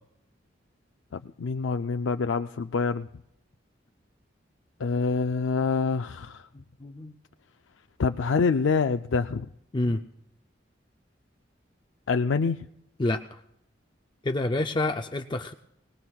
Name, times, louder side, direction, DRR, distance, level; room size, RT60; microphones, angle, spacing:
voice 1, 1.1-3.1 4.8-6.4 8.0-9.5 12.1-12.7, left 4 dB, 90° left, 7 dB, 0.4 m, -26 dB
voice 2, 6.8-7.1 9.7-10.0 13.0-13.4 14.2-15.5, left 2 dB, 25° left, 6 dB, 0.5 m, -28 dB
25.5 x 19.0 x 2.3 m, 0.79 s
head